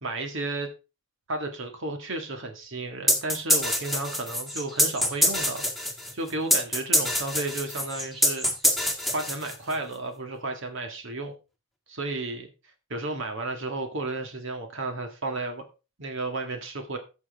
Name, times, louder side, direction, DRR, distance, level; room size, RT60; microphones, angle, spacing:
voice 1, 0.0-0.7 1.3-5.7 6.1-8.5 9.1-11.3 11.9-12.5 12.9-15.6 16.0-17.0, right 2 dB, 65° right, 5 dB, 1.8 m, -33 dB
sound 1, 3.1-9.8, equal, ahead, 1.7 m, -25 dB
14.5 x 6.3 x 3.4 m, 0.31 s
head